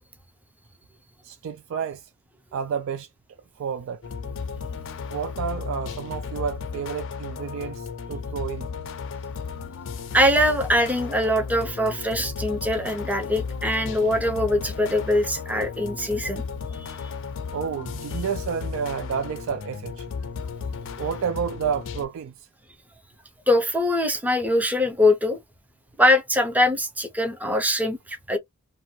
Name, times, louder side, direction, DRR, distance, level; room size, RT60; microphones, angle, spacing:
voice 1, 1.2-2.1 2.5-3.1 3.6-4.0 5.1-8.7 17.5-20.1 21.0-22.5, right 7 dB, 60° right, 0.3 m, -30 dB
sound 1, 4.0-22.1, left 5 dB, 60° left, 0.4 m, -34 dB
voice 2, 10.1-16.4 16.8-17.0 23.5-25.4 26.0-28.4, left 1 dB, 5° right, 0.5 m, -22 dB
2.5 x 2.2 x 3.0 m
head